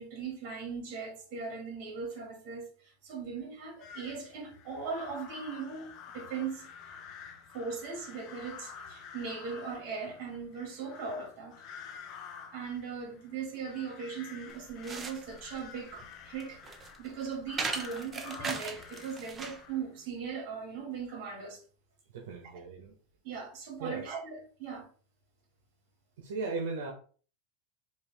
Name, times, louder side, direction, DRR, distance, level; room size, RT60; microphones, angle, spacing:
voice 1, 0.0-6.7 7.5-11.6 12.3-16.6 17.0-21.6 23.2-24.9, right 5 dB, 50° right, 1.9 m, -39 dB
sound 1, 3.8-20.1, left 7 dB, 35° left, 0.6 m, -49 dB
sound 2, 14.5-19.7, right 4 dB, 20° right, 0.5 m, -39 dB
voice 2, 22.1-23.0 23.8-24.1 26.2-26.9, right 3 dB, 80° right, 1.0 m, -37 dB
4.5 x 2.6 x 3.4 m
supercardioid pair, 155°, 0 cm